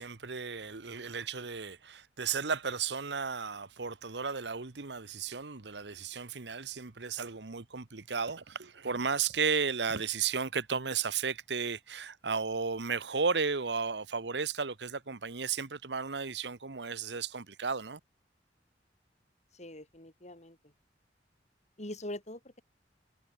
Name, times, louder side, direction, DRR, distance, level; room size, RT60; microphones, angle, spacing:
voice 1, 0.0-18.0, right 5 dB, 80° right, 1.2 m, -34 dB
voice 2, 19.5-20.7 21.8-22.6, left 1 dB, 40° left, 6.6 m, -43 dB
head